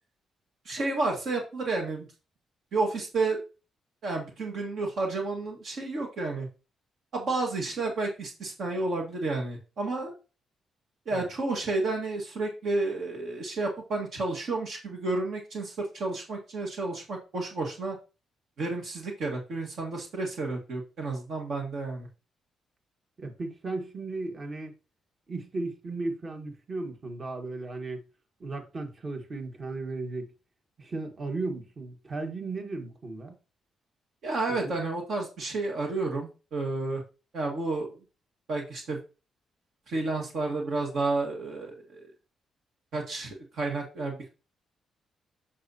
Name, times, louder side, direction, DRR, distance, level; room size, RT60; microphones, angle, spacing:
voice 1, 0.7-2.1 2.7-3.4 4.0-6.5 7.1-10.1 11.1-18.0 18.6-22.1 34.2-37.0 37.3-38.0 38.5-39.0 39.9-42.0 42.9-44.3, right 3 dB, 70° right, 1.8 m, -31 dB
voice 2, 23.2-24.7 25.3-28.1 28.4-30.3 30.8-33.3 34.5-34.7, right 3 dB, 45° right, 1.7 m, -35 dB
7.6 x 5.6 x 2.9 m
supercardioid pair, 60°, 0 cm